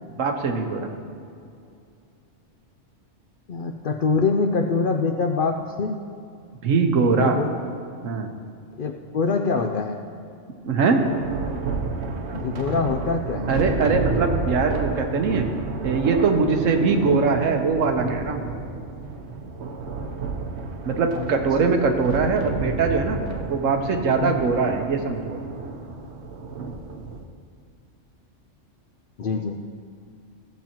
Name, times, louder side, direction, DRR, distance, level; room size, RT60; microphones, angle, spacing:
voice 1, 0.2-0.9 6.6-7.4 8.0-8.3 10.6-11.1 13.5-15.5 15.8-18.5 20.8-23.2 23.5-25.4, right 4 dB, 80° right, 4 dB, 1.2 m, -22 dB
voice 2, 3.5-6.0 7.2-7.6 8.8-10.0 12.3-13.5 21.1-21.3 24.2-24.3 29.2-29.5, left 4 dB, 65° left, 4 dB, 0.5 m, -24 dB
Thunder, 11.0-27.2, right 4 dB, 65° right, 1.0 m, -31 dB
15.0 x 7.4 x 2.9 m, 2.5 s
omnidirectional pair, 1.3 m